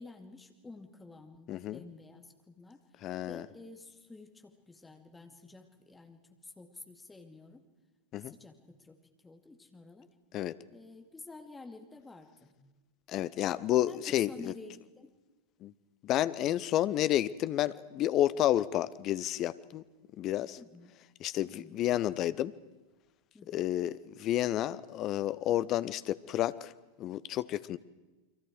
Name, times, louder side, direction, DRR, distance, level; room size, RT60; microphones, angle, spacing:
voice 1, 0.0-7.6 8.2-10.1 10.7-12.6 13.9-15.1 20.6-20.9 21.4-21.8 23.3-23.7, left 3 dB, 10° left, 5 dB, 2.4 m, -51 dB
voice 2, 1.5-1.8 3.0-3.5 8.1-8.3 10.3-10.5 13.1-14.5 15.6-15.7 16.0-19.8 20.2-20.6 21.2-22.5 23.5-26.7 27.0-27.8, left 13 dB, 35° left, 16 dB, 0.8 m, -30 dB
30.0 x 23.0 x 4.8 m, 1.2 s
figure-of-eight pair, 90°, 0 cm